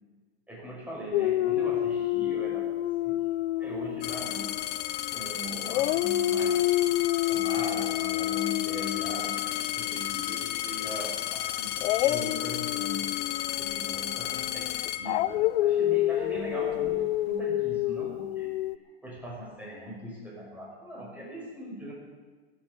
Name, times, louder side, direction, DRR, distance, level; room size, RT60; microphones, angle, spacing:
voice 1, 0.5-3.2 3.6-4.6 5.1-6.7 7.3-9.4 9.7-13.2 13.6-18.5 19.0-21.9, right 1 dB, 5° right, -4 dB, 5.4 m, -40 dB
Dog, 1.1-5.3 5.7-10.7 11.8-18.8, left 14 dB, 70° left, 0.6 m, -29 dB
sound 1, 4.0-15.7 16.5-17.0, left 12 dB, 30° left, 0.7 m, -33 dB
16.0 x 8.7 x 8.2 m, 1.4 s
supercardioid pair, 145°, 34 cm